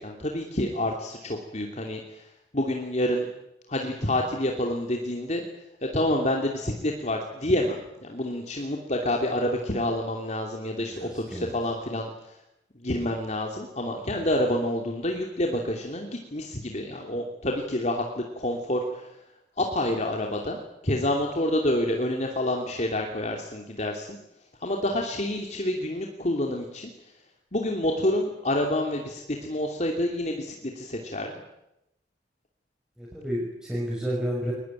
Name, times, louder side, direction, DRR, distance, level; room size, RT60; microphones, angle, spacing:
voice 1, 0.0-2.2 2.5-3.3 3.7-5.4 5.8-12.1 12.8-19.1 19.6-20.6 20.8-24.2 24.6-26.9 27.5-31.3, left 1 dB, 40° left, 1 dB, 2.9 m, -28 dB
voice 2, 10.8-11.5 33.0-34.5, equal, 5° right, -4 dB, 6.2 m, -31 dB
23.0 x 20.0 x 9.1 m, 0.86 s
head